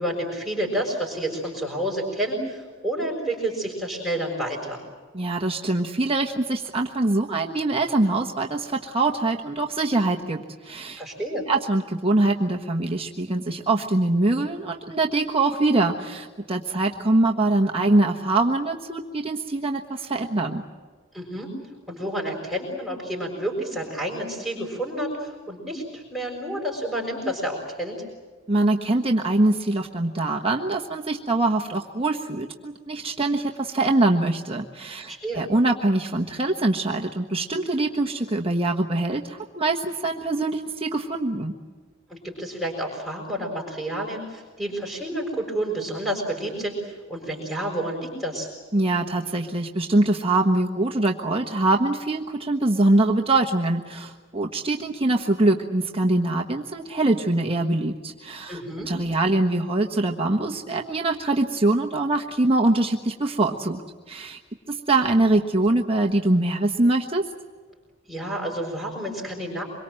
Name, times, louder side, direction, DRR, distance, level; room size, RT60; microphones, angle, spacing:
voice 1, 0.0-4.8 11.0-11.5 21.1-21.5 21.9-28.0 35.1-35.4 42.1-48.5 58.5-58.9 68.1-69.6, right 1 dB, 5° left, -4 dB, 5.8 m, -29 dB
voice 2, 5.1-11.0 11.5-20.6 28.5-41.5 48.7-58.6 58.9-63.8 64.1-64.4 64.7-67.3, right 2 dB, 30° right, 1 dB, 1.3 m, -23 dB
26.5 x 23.0 x 7.7 m, 1.4 s
head